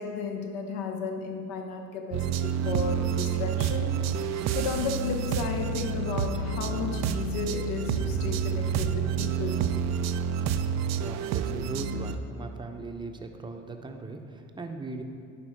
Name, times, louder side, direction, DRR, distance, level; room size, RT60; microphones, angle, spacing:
voice 1, 0.0-9.6, left 4 dB, 65° left, 3 dB, 1.2 m, -34 dB
sound 1, 2.1-12.2, right 7 dB, 45° right, 0.5 m, -29 dB
voice 2, 11.0-15.0, right 3 dB, 10° right, 4 dB, 0.8 m, -39 dB
11.0 x 4.3 x 4.4 m, 2.3 s
hypercardioid pair, 70°, 40 cm